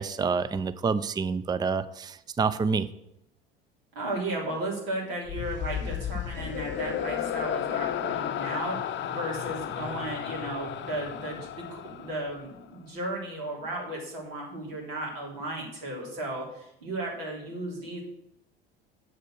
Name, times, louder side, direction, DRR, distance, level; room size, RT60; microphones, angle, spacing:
voice 1, 0.0-2.9, right 5 dB, 15° right, 15 dB, 0.5 m, -28 dB
voice 2, 3.9-18.0, right 1 dB, 75° right, -2 dB, 3.3 m, -35 dB
sound 1, 5.3-12.6, left 10 dB, 40° left, 0.7 m, -33 dB
7.7 x 6.6 x 6.2 m, 0.80 s
hypercardioid pair, 70°, 30 cm